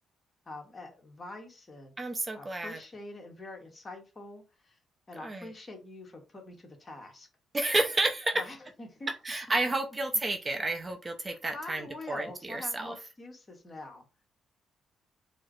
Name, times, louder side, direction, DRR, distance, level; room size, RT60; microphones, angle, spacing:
voice 1, 0.5-1.9 2.3-4.8 5.1-7.3 8.3-9.1 11.3-14.1, left 2 dB, 30° left, 2 dB, 1.3 m, -45 dB
voice 2, 2.0-2.8 5.2-5.5 7.5-8.3 9.2-12.9, right 2 dB, 25° right, 6 dB, 0.5 m, -31 dB
4.6 x 2.1 x 3.1 m, 0.29 s
cardioid pair, 90°, 0 cm